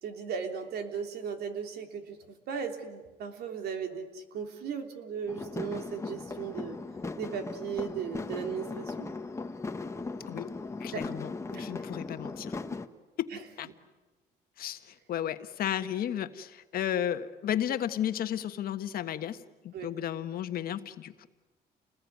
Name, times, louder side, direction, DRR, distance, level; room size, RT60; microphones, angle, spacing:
voice 1, 0.0-6.8 7.2-9.1 10.9-11.0 11.5-11.7 13.3-13.4 19.7-19.9, right 7 dB, 70° right, 5 dB, 3.3 m, -37 dB
sound 1, 5.3-12.9, left 3 dB, 15° left, 1.3 m, -38 dB
voice 2, 10.8-12.6 13.2-13.7 14.6-21.3, left 10 dB, 60° left, 9 dB, 1.5 m, -34 dB
29.5 x 20.5 x 9.5 m, 1.2 s
cardioid pair, 110°, 17 cm